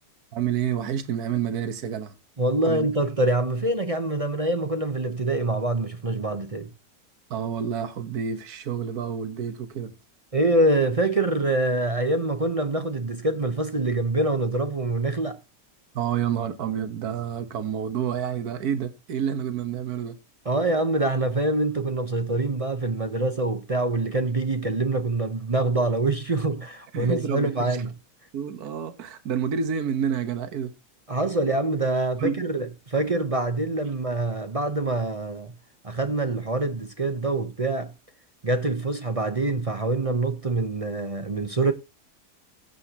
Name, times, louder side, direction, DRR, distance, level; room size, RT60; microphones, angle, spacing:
voice 1, 0.3-2.1 2.6-2.9 7.3-9.9 15.9-20.2 26.9-27.8 28.3-30.7 32.2-32.4, right 8 dB, 65° right, 1.7 m, -29 dB
voice 2, 2.4-6.7 10.3-15.4 20.4-27.9 31.1-35.5 35.8-37.9 38.4-41.7, right 2 dB, 30° right, 0.6 m, -25 dB
16.0 x 8.5 x 2.9 m
omnidirectional pair, 1.8 m